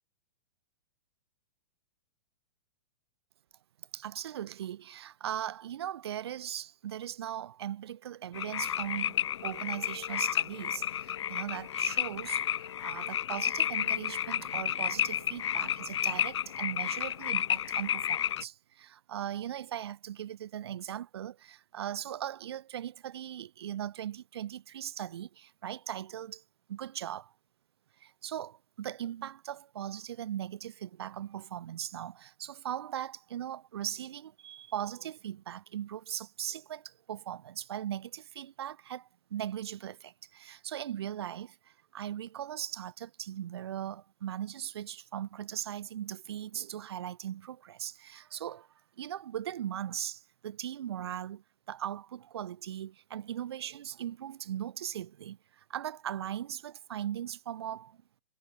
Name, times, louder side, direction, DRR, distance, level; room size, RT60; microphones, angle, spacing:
voice 1, 3.9-26.4 26.7-27.3 28.0-48.7 49.0-58.0, right 11 dB, 60° right, 1.3 m, -39 dB
sound 1, 8.3-18.4, left 10 dB, 70° left, 1.0 m, -32 dB
hypercardioid pair, 175°, 15 cm